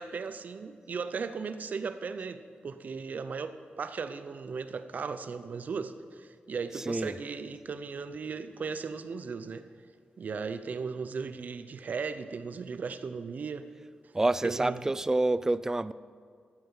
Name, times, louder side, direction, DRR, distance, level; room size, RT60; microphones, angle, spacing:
voice 1, 0.0-9.7 10.2-13.7 14.4-14.9, right 5 dB, 55° right, 11 dB, 0.7 m, -37 dB
voice 2, 6.7-7.2 14.1-15.9, right 2 dB, 15° right, 16 dB, 0.3 m, -28 dB
15.0 x 9.2 x 5.7 m, 2.1 s
wide cardioid pair, 130°, 3 cm